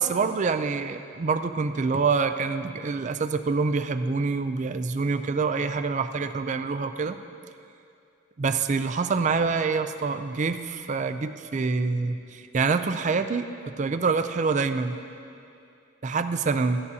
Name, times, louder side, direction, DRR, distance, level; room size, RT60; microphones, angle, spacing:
voice 1, 0.0-7.2 8.4-15.0 16.0-16.8, right 4 dB, 35° right, 9 dB, 0.4 m, -26 dB
15.5 x 10.5 x 2.7 m, 2.5 s
head